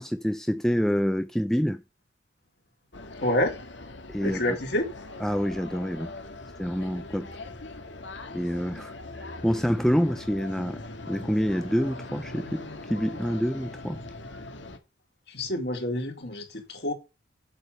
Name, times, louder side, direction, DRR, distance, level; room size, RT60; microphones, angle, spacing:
voice 1, 0.0-1.8 4.1-4.6 5.2-6.1 6.6-7.3 8.3-12.6 12.9-14.0, equal, ahead, 0.5 m, -27 dB
sound 1, 2.9-14.8, left 2 dB, 75° left, 1.9 m, -41 dB
voice 2, 3.2-3.5 4.2-4.9 15.3-16.9, left 1 dB, 60° left, 3.4 m, -27 dB
8.3 x 7.4 x 6.4 m
head